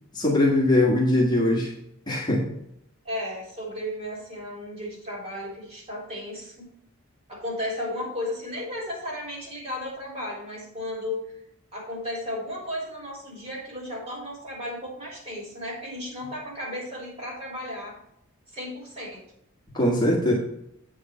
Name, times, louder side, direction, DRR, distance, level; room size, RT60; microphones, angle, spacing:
voice 1, 0.1-1.7 2.1-2.5 19.7-20.3, left 1 dB, 20° left, -3 dB, 1.5 m, -21 dB
voice 2, 3.0-6.6 7.3-11.3 11.7-18.0 18.5-19.2, left 1 dB, 30° right, -3 dB, 3.6 m, -34 dB
8.6 x 5.0 x 5.7 m, 0.75 s
head